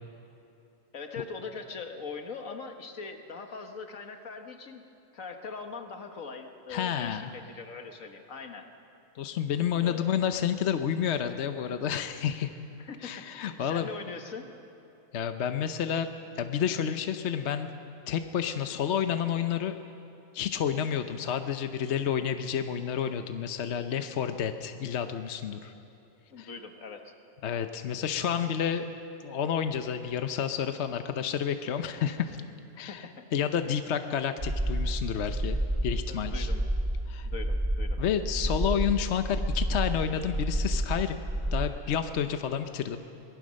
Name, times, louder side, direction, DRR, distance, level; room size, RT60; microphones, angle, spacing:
voice 1, 0.9-4.8 5.1-8.7 9.8-10.0 12.8-14.5 26.3-27.1 32.8-33.2 36.1-36.6 37.2-38.0, left 4 dB, 80° left, 5 dB, 1.8 m, -41 dB
voice 2, 6.7-7.4 9.1-12.5 13.0-13.9 15.1-16.1 16.4-17.7 18.1-19.8 20.3-25.7 26.4-26.5 27.4-28.9 29.2-32.4 32.8-33.1 33.3-36.5 37.1-37.3 38.0-41.2 41.5-43.0, left 8 dB, 60° left, 8 dB, 1.0 m, -30 dB
sound 1, 34.4-41.6, right 1 dB, 50° right, 3.4 m, -30 dB
23.0 x 18.5 x 6.4 m, 3.0 s
omnidirectional pair, 1.4 m